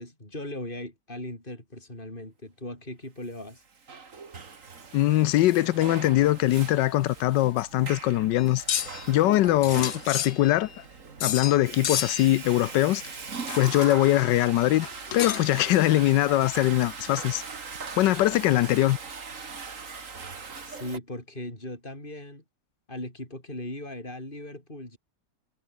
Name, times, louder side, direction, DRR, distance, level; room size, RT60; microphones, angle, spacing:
voice 1, 0.0-3.6 20.6-22.4 22.9-25.0, left 1 dB, 25° left, 7.3 m, -38 dB
Water / Toilet flush, 3.5-21.0, right 5 dB, 45° right, 2.4 m, -40 dB
voice 2, 4.9-8.6 9.1-10.7 11.2-13.0 13.5-14.9 15.1-17.4 18.0-19.0, left 15 dB, 75° left, 1.3 m, -22 dB
sound 1, 8.4-9.1 9.6-10.8 11.2-11.6 11.8-12.4 13.5-14.1 14.8-15.6, left 10 dB, 60° left, 0.7 m, -31 dB
omnidirectional pair, 2.0 m